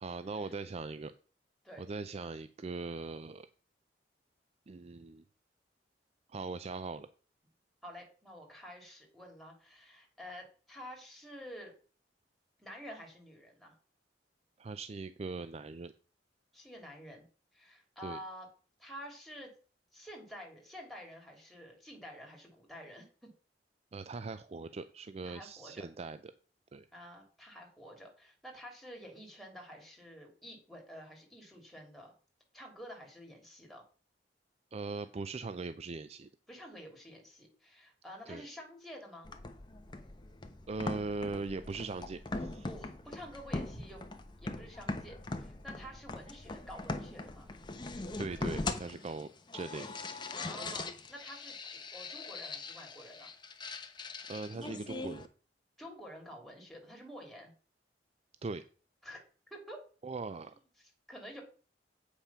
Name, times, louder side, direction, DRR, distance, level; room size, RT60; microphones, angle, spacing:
voice 1, 0.0-1.1 1.8-3.5 4.7-5.2 6.3-7.1 14.6-15.9 18.0-18.2 23.9-26.2 26.7-26.9 34.7-36.3 38.3-38.5 40.7-42.7 48.2-49.9 54.3-55.3 58.4-58.6 60.0-60.5, right 3 dB, 35° right, 12 dB, 0.4 m, -40 dB
voice 2, 7.8-11.7 12.6-13.7 16.5-17.3 17.5-18.5 18.8-19.5 19.9-23.3 25.2-25.8 26.9-32.1 32.5-33.8 36.5-39.3 42.6-44.0 44.4-47.5 50.3-53.3 55.8-57.5 59.0-59.2 59.5-59.8 60.8-61.4, equal, ahead, 0 dB, 2.9 m, -49 dB
sound 1, 39.2-55.2, left 2 dB, 25° left, 0.9 m, -41 dB
8.4 x 5.7 x 5.7 m, 0.39 s
head